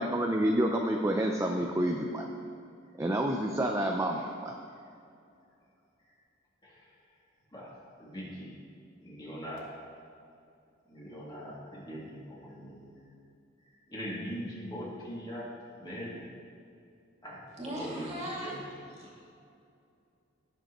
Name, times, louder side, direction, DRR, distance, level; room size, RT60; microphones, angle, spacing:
voice 1, 0.0-2.2 3.0-4.5, right 1 dB, 15° right, 2 dB, 0.5 m, -28 dB
voice 2, 8.0-8.5 9.0-9.6 10.9-12.9 13.9-15.5 15.8-16.2 17.2-18.6, equal, 25° left, -7 dB, 2.6 m, -41 dB
voice 3, 17.6-19.2, right 1 dB, 35° right, -4 dB, 2.3 m, -39 dB
17.5 x 6.7 x 3.1 m, 2.5 s
head